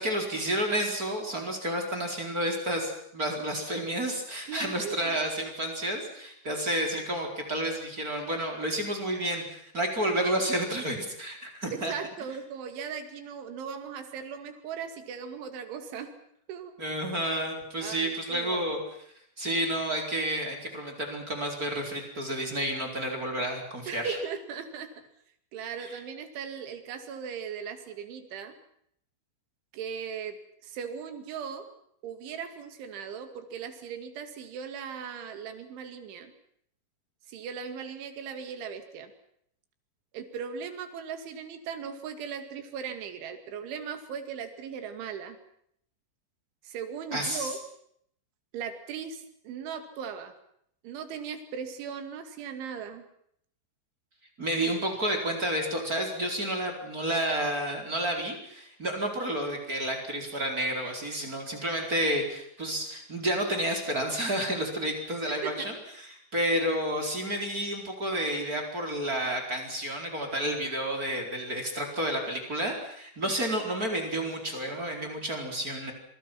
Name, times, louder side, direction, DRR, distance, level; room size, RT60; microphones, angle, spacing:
voice 1, 0.0-11.9 16.8-18.8 19.4-24.2 25.8-25.9 47.1-47.5 54.4-75.9, right 1 dB, 20° right, 2 dB, 4.3 m, -30 dB
voice 2, 4.5-5.2 11.7-16.1 16.5-16.8 17.8-18.6 23.9-24.9 25.5-28.5 29.7-30.4 30.6-31.7 32.0-36.3 37.3-39.1 40.1-45.4 46.6-47.6 48.5-50.3 50.8-53.1 65.3-65.7, right 7 dB, 85° right, 8 dB, 4.8 m, -38 dB
27.0 x 24.0 x 6.0 m, 0.68 s
omnidirectional pair, 5.3 m